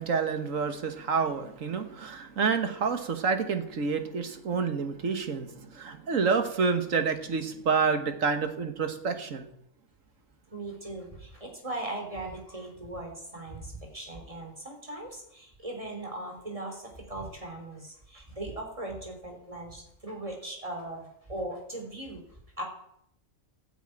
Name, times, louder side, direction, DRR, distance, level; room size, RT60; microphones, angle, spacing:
voice 1, 0.0-9.5, right 5 dB, 70° right, 8 dB, 1.8 m, -28 dB
voice 2, 10.5-22.6, right 1 dB, 25° right, 3 dB, 3.6 m, -39 dB
13.0 x 9.7 x 9.0 m, 0.76 s
omnidirectional pair, 1.4 m